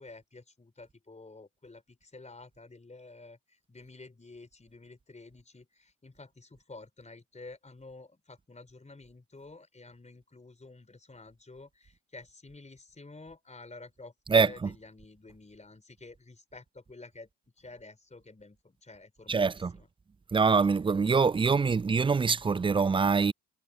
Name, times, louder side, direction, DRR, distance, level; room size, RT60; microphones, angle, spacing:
voice 1, 0.0-17.3 17.6-19.9, left 3 dB, 20° left, 4.4 m, -50 dB
voice 2, 19.3-19.7 20.3-23.3, right 5 dB, 15° right, 0.4 m, -24 dB
hypercardioid pair, 50°, 38 cm